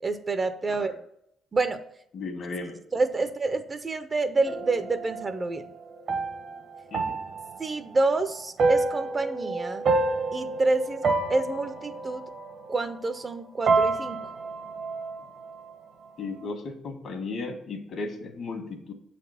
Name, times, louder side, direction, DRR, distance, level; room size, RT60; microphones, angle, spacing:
voice 1, 0.0-0.9 1.5-1.8 2.9-5.6 7.6-9.8 10.3-11.0 11.3-12.2 12.7-14.2, right 3 dB, 30° right, 10 dB, 0.7 m, -28 dB
voice 2, 2.1-2.8 6.9-7.2 16.2-18.9, left 3 dB, 60° left, 5 dB, 1.6 m, -35 dB
sound 1, 4.5-13.4 13.7-15.7, right 3 dB, 60° right, 1.3 m, -28 dB
7.5 x 4.2 x 5.6 m, 0.73 s
cardioid pair, 95°, 0 cm